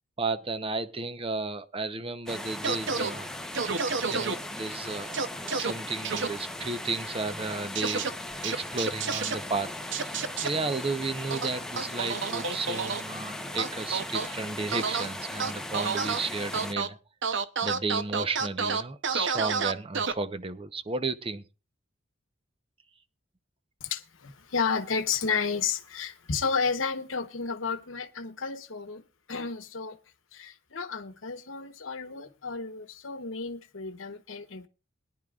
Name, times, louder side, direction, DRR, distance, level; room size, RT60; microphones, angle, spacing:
voice 1, 0.2-3.3 4.1-5.1 5.4-8.1 8.4-17.0 17.6-21.4, right 3 dB, 30° right, 0.7 m, -33 dB
sound 1, 2.3-16.7, left 1 dB, 5° left, 0.8 m, -38 dB
sound 2, 2.6-3.1 3.5-4.3 5.1-5.7 6.0-6.3 7.7-8.1 8.4-9.3 9.9-10.5 11.3-13.0 13.6-14.3 14.7-15.1 15.4-16.2 16.5-16.9 17.2-20.1, right 5 dB, 65° right, 0.8 m, -29 dB
voice 2, 23.8-30.0 30.3-34.7, left 5 dB, 90° left, 1.0 m, -32 dB
21.5 x 10.5 x 2.4 m
head